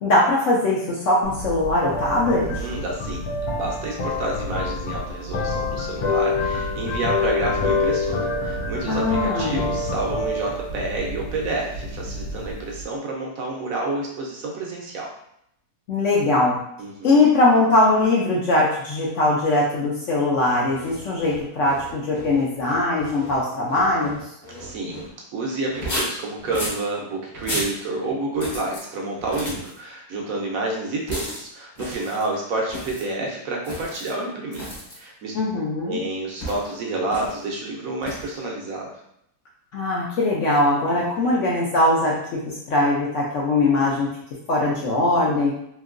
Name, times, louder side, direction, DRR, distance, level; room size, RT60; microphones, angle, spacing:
voice 1, 0.0-2.7 8.9-9.7 15.9-16.6 17.0-24.2 35.3-36.0 39.7-42.4 42.7-44.1 44.5-45.5, left 2 dB, 65° left, -4 dB, 0.8 m, -21 dB
sound 1, 1.2-12.8, left 3 dB, 90° left, 1.2 m, -27 dB
voice 2, 2.5-3.2 3.5-15.1 16.8-17.2 24.6-34.7 34.9-35.4 35.9-38.9 40.9-41.4, right 2 dB, 70° right, -1 dB, 0.9 m, -29 dB
sound 2, 20.7-25.1 25.7-26.8 27.3-27.8 28.3-28.8 29.2-29.8 31.1-31.4 31.7-32.3 32.7-33.0 33.6-34.1 34.5-35.0 36.4-36.7 37.1-37.4 38.0-38.4, equal, 35° left, 0.9 m, -34 dB
2.9 x 2.6 x 2.4 m, 0.75 s
omnidirectional pair, 1.7 m